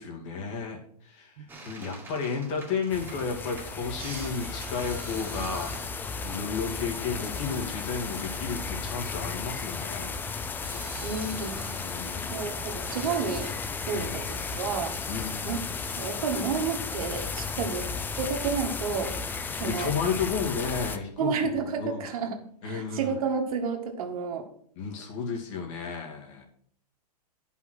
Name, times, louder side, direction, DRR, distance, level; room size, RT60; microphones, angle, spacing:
voice 1, 0.0-1.3 1.6-5.7 6.2-10.2 11.8-12.3 13.9-14.2 15.1-15.6 17.5-17.7 19.6-22.0 22.6-23.1 24.8-26.4, left 5 dB, 50° left, 1 dB, 2.4 m, -33 dB
sound 1, 1.5-12.4 12.8-13.5, right 2 dB, 10° right, 2.0 m, -46 dB
sound 2, 2.9-21.0, left 4 dB, 10° left, 0.4 m, -34 dB
voice 2, 11.0-11.6 12.2-13.5 13.9-15.0 15.5-15.6 16.0-17.9 18.2-19.9 21.2-22.4 22.6-24.5, right 5 dB, 60° right, 3 dB, 1.9 m, -31 dB
9.6 x 5.7 x 6.3 m, 0.64 s
hypercardioid pair, 135°, 20 cm